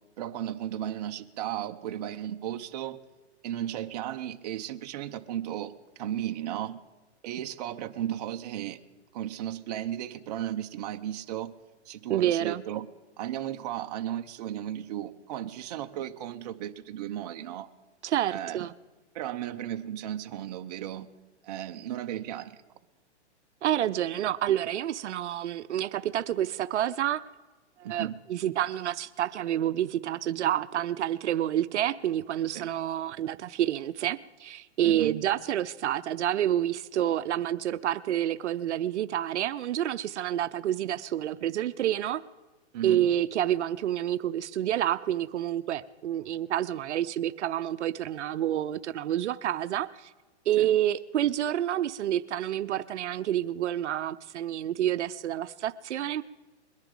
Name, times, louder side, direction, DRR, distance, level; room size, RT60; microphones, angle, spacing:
voice 1, 0.2-3.0 3.4-6.8 7.3-8.8 9.1-11.5 11.9-12.9 13.2-17.7 18.3-18.7 19.1-21.1 21.4-22.6 27.8-28.2 32.5-32.7 34.8-35.2 42.7-43.1 50.6-50.7, right 11 dB, 35° right, 6 dB, 0.6 m, -35 dB
voice 2, 12.1-12.6 18.0-18.7 23.6-27.2 27.9-42.2 42.8-50.1 50.5-56.2, right 11 dB, 75° right, 12 dB, 0.6 m, -28 dB
21.5 x 10.5 x 3.8 m, 1.2 s
hypercardioid pair, 155°, 35 cm